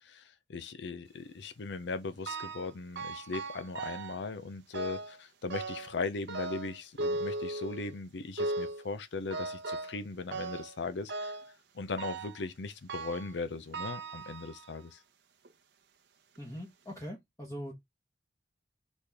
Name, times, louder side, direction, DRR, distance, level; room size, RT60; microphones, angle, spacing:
voice 1, 0.0-11.4 11.7-15.0, left 3 dB, 80° left, 0.5 m, -38 dB
sound 1, 2.3-2.7 3.0-4.3 4.7-5.2 5.5-6.0 6.3-8.0 8.4-8.8 9.3-10.0 10.3-10.8 11.1-11.5 12.0-12.4 12.9-13.3 13.7-14.8 15.4-15.5 16.4-16.5 16.9-17.0, right 2 dB, 80° right, 0.7 m, -37 dB
voice 2, 16.4-17.7, equal, 15° left, 0.9 m, -42 dB
4.2 x 3.2 x 3.4 m
head